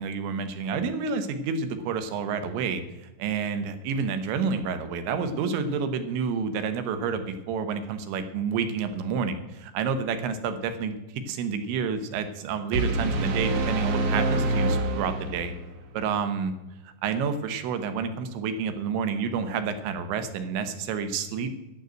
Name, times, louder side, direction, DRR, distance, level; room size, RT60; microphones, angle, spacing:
voice 1, 0.0-15.5 15.9-16.5 16.9-21.5, right 6 dB, 85° right, 10 dB, 3.5 m, -29 dB
sound 1, 12.7-15.7, right 2 dB, 60° right, 2.2 m, -26 dB
12.0 x 7.8 x 8.0 m, 1.0 s
omnidirectional pair, 5.2 m